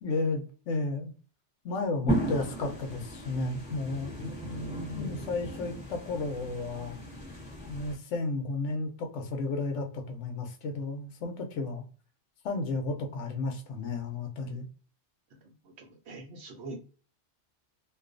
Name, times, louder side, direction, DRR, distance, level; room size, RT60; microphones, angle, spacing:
voice 1, 0.0-1.1 1.6-4.1 4.9-7.0 7.7-11.8 12.4-14.7, left 3 dB, 85° left, 4 dB, 0.9 m, -33 dB
sound 1, 2.1-7.9, right 1 dB, 5° right, 1.0 m, -36 dB
voice 2, 4.2-5.4 15.3-16.8, equal, 70° right, 2 dB, 0.9 m, -42 dB
2.4 x 2.3 x 2.4 m, 0.37 s
omnidirectional pair, 1.2 m